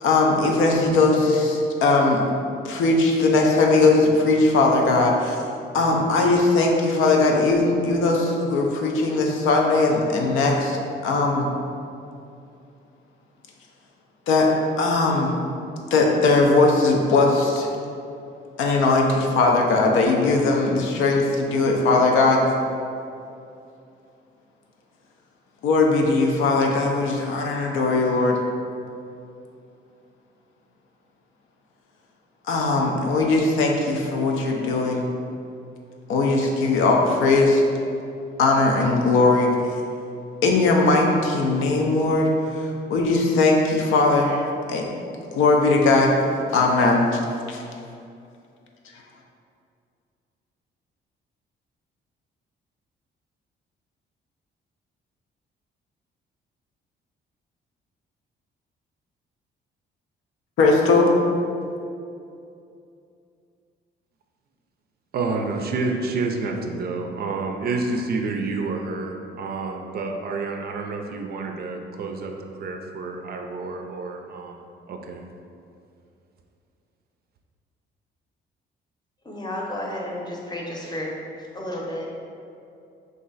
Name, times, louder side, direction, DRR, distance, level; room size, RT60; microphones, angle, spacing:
voice 1, 0.0-2.2 2.6-5.4 5.7-11.5 14.3-14.5 14.8-15.3 15.9-17.7 18.6-22.4 25.6-28.4 32.5-35.1 36.1-37.6 38.4-39.5 40.4-44.8 45.3-46.1 46.5-47.1 47.5-47.6 60.6-61.1, left 3 dB, 85° left, 0 dB, 0.5 m, -19 dB
voice 2, 65.1-75.2, right 3 dB, 50° right, 3 dB, 0.4 m, -29 dB
voice 3, 79.2-81.1 81.5-82.1, left 1 dB, 20° left, -2 dB, 0.7 m, -31 dB
3.1 x 2.5 x 3.9 m, 2.5 s
cardioid pair, 90°, 20 cm